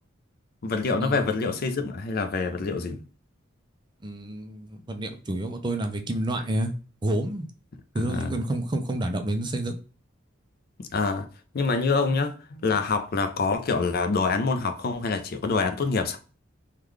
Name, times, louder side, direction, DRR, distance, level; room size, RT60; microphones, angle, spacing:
voice 1, 0.6-3.0 8.0-8.3 10.8-11.3 11.5-16.2, left 4 dB, 50° left, 0.5 m, -26 dB
voice 2, 4.0-6.7 7.0-7.5 7.9-9.8, right 1 dB, 25° right, 0.5 m, -29 dB
3.6 x 2.3 x 3.0 m
head